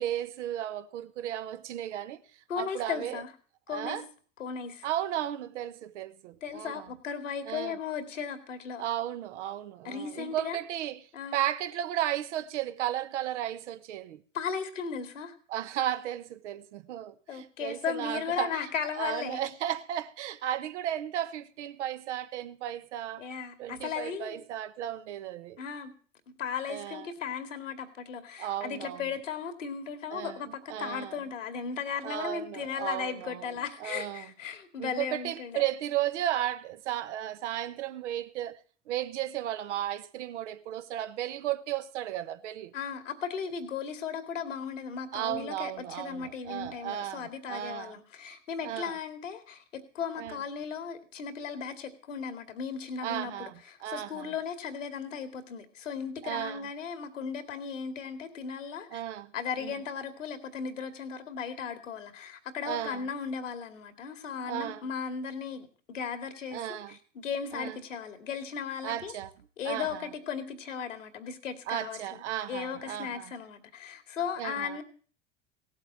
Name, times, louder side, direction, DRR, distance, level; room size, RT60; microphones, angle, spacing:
voice 1, 0.0-2.2 2.6-3.2 3.7-4.0 4.8-6.9 7.5-7.8 8.8-11.0 11.3-14.2 15.5-18.6 19.0-23.2 23.6-25.6 26.7-27.1 28.4-29.0 30.1-30.4 30.7-31.2 32.0-33.5 33.8-34.3 34.8-38.6 38.9-42.7 45.1-48.0 48.6-48.9 50.2-50.4 53.0-53.5 53.8-54.3 56.2-56.7 58.9-59.3 59.6-59.7 62.6-63.1 64.4-64.9 66.5-67.0 67.5-67.8 68.8-69.3 69.6-70.1 71.7-73.3 74.4-74.8, right 12 dB, 65° right, 1.3 m, -34 dB
voice 2, 2.5-3.3 3.7-4.0 4.4-4.9 6.4-8.8 9.8-10.6 11.1-11.4 14.3-15.4 17.3-19.4 23.2-24.4 25.6-25.9 26.4-35.6 42.7-59.0 59.3-69.1 69.6-72.2 72.5-74.8, left 6 dB, 80° left, 2.4 m, -36 dB
17.5 x 8.1 x 7.3 m
figure-of-eight pair, 80°, 37 cm